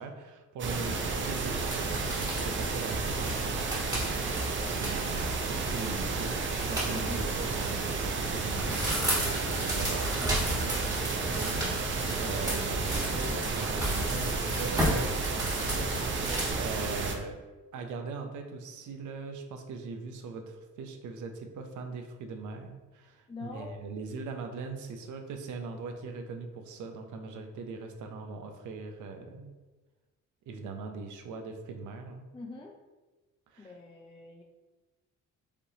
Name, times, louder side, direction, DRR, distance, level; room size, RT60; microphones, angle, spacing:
voice 1, 0.0-4.0 4.6-17.4 17.7-29.5 30.5-32.3 33.5-33.7, right 4 dB, 75° right, 5 dB, 0.7 m, -40 dB
sound 1, 0.6-17.1, right 3 dB, 40° right, 0.6 m, -32 dB
sound 2, 1.6-16.5, right 1 dB, 10° right, 1.5 m, -35 dB
voice 2, 6.9-7.3 23.3-23.7 32.3-32.8 33.6-34.4, left 3 dB, 15° left, 0 dB, 0.5 m, -43 dB
5.1 x 3.1 x 2.8 m, 1.2 s
cardioid pair, 90°, 30 cm